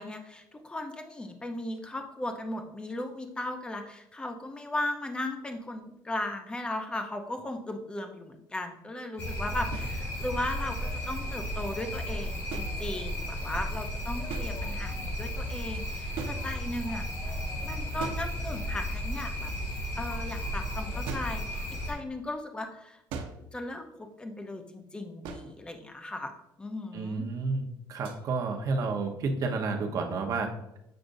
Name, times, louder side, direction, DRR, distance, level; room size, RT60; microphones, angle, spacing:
voice 1, 0.0-17.0 17.6-19.5 20.0-21.6 21.9-23.0 23.5-26.3 26.6-27.3, left 1 dB, 10° left, 6 dB, 0.6 m, -37 dB
sound 1, 9.2-21.9, equal, 30° left, 1.6 m, -34 dB
sound 2, 9.7-10.0 12.5-13.3 14.3-14.9 16.2-16.9 18.0-18.8 21.1-21.5 23.1-23.6 25.2-25.7 28.0-28.2, right 5 dB, 90° right, 0.8 m, -40 dB
voice 2, 26.9-30.5, right 4 dB, 45° right, 3 dB, 0.9 m, -30 dB
7.8 x 5.0 x 2.6 m, 0.85 s
cardioid pair, 155°, 8 cm